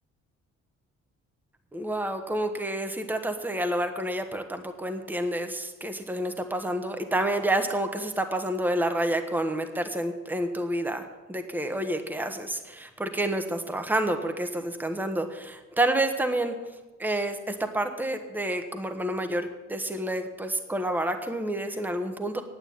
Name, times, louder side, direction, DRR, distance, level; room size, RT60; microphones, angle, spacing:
voice 1, 1.7-16.5 17.0-22.4, right 1 dB, 5° right, 6 dB, 1.2 m, -29 dB
9.4 x 8.1 x 9.3 m, 1.2 s
cardioid pair, 90°, 30 cm